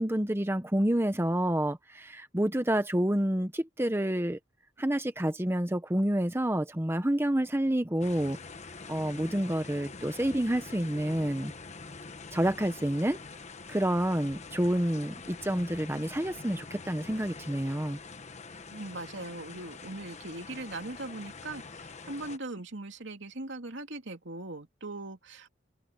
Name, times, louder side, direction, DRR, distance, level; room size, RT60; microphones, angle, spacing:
voice 1, 0.0-4.4 4.8-8.4 8.9-11.5 12.3-13.2 13.7-18.0, right 1 dB, 15° right, 1.0 m, -28 dB
sound 1, 8.0-22.4, left 4 dB, 40° left, 1.2 m, -45 dB
voice 2, 18.7-25.5, right 2 dB, 70° right, 3.0 m, -40 dB
head